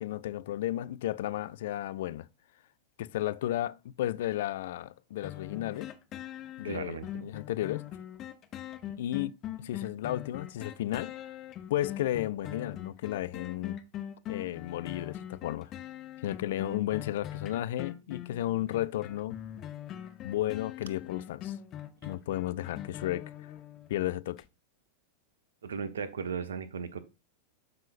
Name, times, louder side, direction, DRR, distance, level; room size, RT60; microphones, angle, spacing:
voice 1, 0.0-2.3 3.0-5.9 6.6-7.9 9.0-11.1 11.7-13.8 14.3-15.7 16.2-19.4 20.2-21.6 22.1-23.3 23.9-24.4, left 13 dB, 55° left, 0.4 m, -33 dB
sound 1, 5.2-23.9 24.4-24.5, left 11 dB, 35° left, 0.9 m, -42 dB
voice 2, 6.6-7.2 25.6-27.0, right 6 dB, 65° right, 1.0 m, -36 dB
12.0 x 5.6 x 2.5 m
figure-of-eight pair, 90°, 0 cm